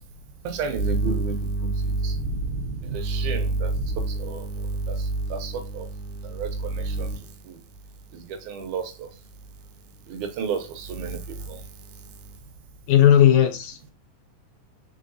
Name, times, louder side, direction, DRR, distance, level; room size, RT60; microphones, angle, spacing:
voice 1, 0.5-5.0 5.3-5.9 6.2-7.2 8.5-9.1 10.1-11.2, right 3 dB, 75° right, 2.2 m, -28 dB
voice 2, 12.9-13.9, left 10 dB, 75° left, 1.8 m, -16 dB
5.1 x 3.8 x 2.7 m
omnidirectional pair, 3.7 m